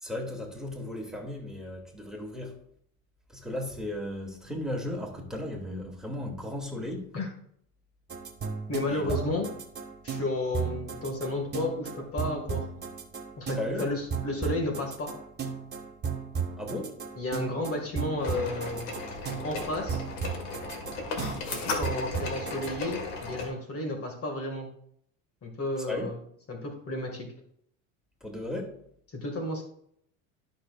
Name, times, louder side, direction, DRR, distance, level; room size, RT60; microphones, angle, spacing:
voice 1, 0.0-2.6 3.3-7.1 8.9-9.3 13.6-13.8 16.6-17.0 25.9-26.1 28.2-28.8, left 1 dB, ahead, 2.5 m, -35 dB
sound 1, 8.1-22.7, right 6 dB, 25° right, 1.8 m, -35 dB
voice 2, 8.7-9.5 10.0-12.7 13.4-15.1 17.2-18.9 19.4-20.0 21.6-24.7 25.4-26.2 26.5-27.3 29.1-29.6, left 2 dB, 35° left, 1.9 m, -32 dB
sound 2, 18.2-23.5, left 3 dB, 70° left, 2.1 m, -35 dB
13.0 x 6.4 x 2.4 m
hypercardioid pair, 90°, 41 cm